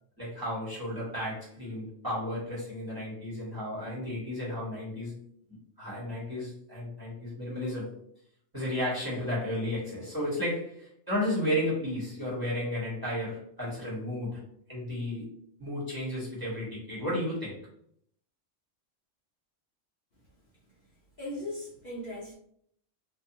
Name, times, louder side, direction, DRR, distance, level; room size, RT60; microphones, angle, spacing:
voice 1, 0.2-5.1 5.8-7.9 8.5-14.4 14.7-15.3 15.6-17.6, left 1 dB, 20° right, -7 dB, 0.9 m, -33 dB
voice 2, 21.2-22.3, left 1 dB, 55° left, -6 dB, 0.6 m, -38 dB
2.6 x 2.1 x 2.7 m, 0.68 s
omnidirectional pair, 1.3 m